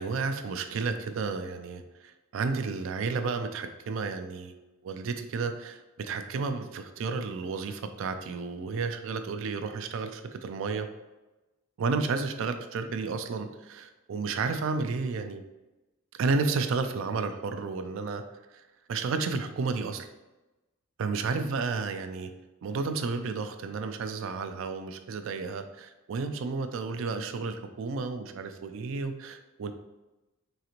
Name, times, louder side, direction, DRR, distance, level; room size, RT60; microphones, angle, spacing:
voice 1, 0.0-4.5 4.8-10.9 11.8-15.4 16.2-18.2 18.5-18.6 18.9-20.1 21.0-22.3 22.6-29.7, right 4 dB, 65° right, 8 dB, 0.3 m, -32 dB
3.9 x 2.4 x 2.9 m, 1.0 s
head